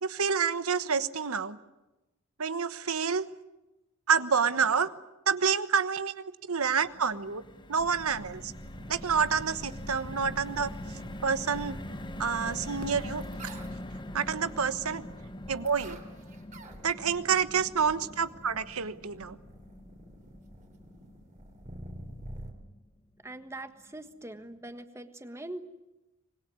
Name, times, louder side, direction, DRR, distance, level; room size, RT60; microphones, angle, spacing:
voice 1, 0.0-1.6 2.4-3.3 4.1-4.9 5.3-7.4 7.7-8.5 8.9-10.7 11.2-11.8 12.2-13.2 14.1-15.0 15.5-16.0 16.8-19.4, right 6 dB, 90° right, 13 dB, 1.2 m, -28 dB
sound 1, 6.6-22.9 23.3-23.4 23.7-23.9, left 1 dB, 20° left, 1.1 m, -44 dB
sound 2, 7.8-22.5, equal, 35° right, 3.4 m, -46 dB
voice 2, 23.2-25.6, right 1 dB, 15° right, 9 dB, 1.4 m, -42 dB
25.5 x 21.0 x 9.5 m, 1.0 s
head